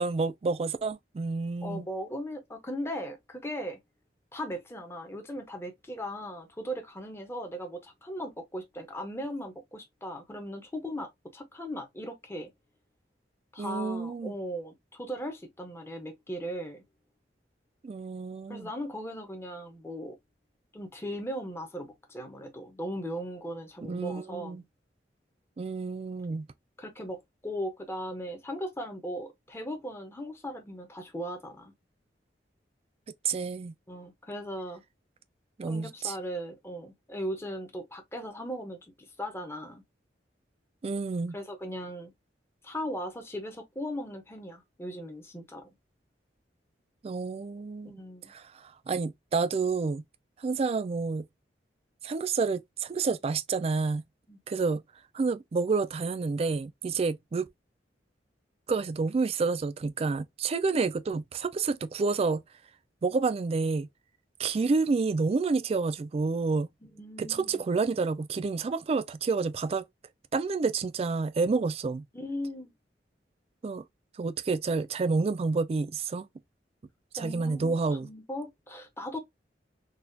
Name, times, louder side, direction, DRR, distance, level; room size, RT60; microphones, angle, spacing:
voice 1, 0.0-1.9 13.6-14.3 17.8-18.7 23.8-24.6 25.6-26.5 33.2-33.7 35.6-36.2 40.8-41.4 47.0-48.0 48.3-50.0 50.4-51.3 52.0-54.0 54.5-54.8 55.1-57.5 58.7-62.4 63.0-63.9 64.4-66.7 67.2-69.8 70.3-72.0 73.6-73.8 74.2-76.3 77.1-78.1, right 4 dB, 35° right, 0.3 m, -29 dB
voice 2, 1.6-3.8 4.3-12.5 13.5-16.8 18.5-20.2 20.7-24.6 26.8-31.7 33.9-34.8 35.6-39.8 41.3-42.1 42.6-45.7 48.0-48.3 54.3-54.4 66.8-67.6 72.1-72.7 77.2-79.2, equal, 15° left, 0.7 m, -38 dB
4.0 x 2.3 x 2.6 m
head